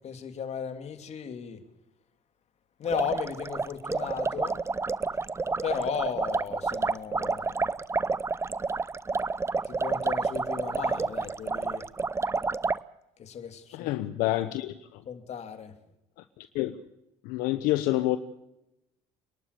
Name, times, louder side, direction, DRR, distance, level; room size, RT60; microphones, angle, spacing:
voice 1, 0.0-1.6 2.8-4.6 5.6-7.6 9.7-11.9 13.2-14.3 15.1-15.7, left 7 dB, 50° left, 2.9 m, -35 dB
sound 1, 2.9-12.8, right 4 dB, 20° right, 0.7 m, -29 dB
voice 2, 13.7-15.0 16.4-16.8 17.2-18.2, left 16 dB, 80° left, 1.0 m, -28 dB
27.5 x 11.5 x 8.4 m
supercardioid pair, 90°, 15 cm